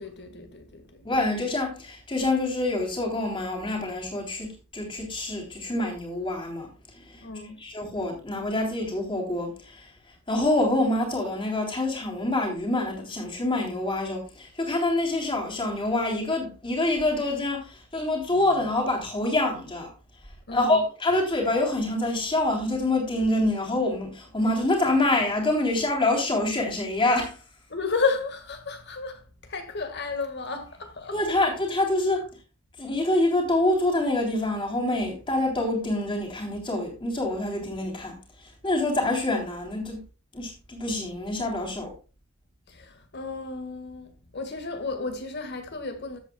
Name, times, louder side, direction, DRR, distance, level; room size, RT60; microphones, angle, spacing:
voice 1, 0.0-1.1 7.2-7.6 20.5-20.9 27.7-31.5 42.7-46.2, left 4 dB, 50° left, 1.9 m, -32 dB
voice 2, 1.0-7.2 7.6-9.9 10.3-19.9 20.5-27.4 31.1-32.3 32.8-40.0 40.3-41.9, left 2 dB, 25° left, 3.4 m, -26 dB
13.5 x 8.2 x 2.3 m
head